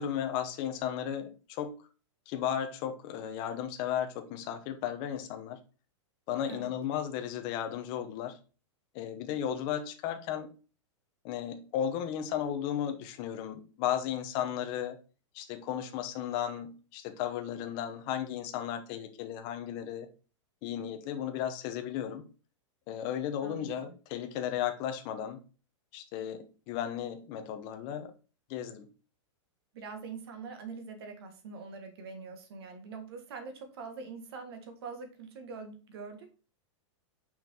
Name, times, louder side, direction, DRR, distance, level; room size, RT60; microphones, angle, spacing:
voice 1, 0.0-1.7 2.3-5.6 6.3-8.4 8.9-10.5 11.2-15.0 15.3-20.1 20.6-22.2 22.9-25.4 25.9-28.1 28.5-28.9, left 9 dB, 25° left, 0.8 m, -35 dB
voice 2, 23.4-23.9 29.7-36.3, right 4 dB, 55° right, 1.6 m, -44 dB
5.8 x 4.6 x 4.4 m
supercardioid pair, 175°, 16 cm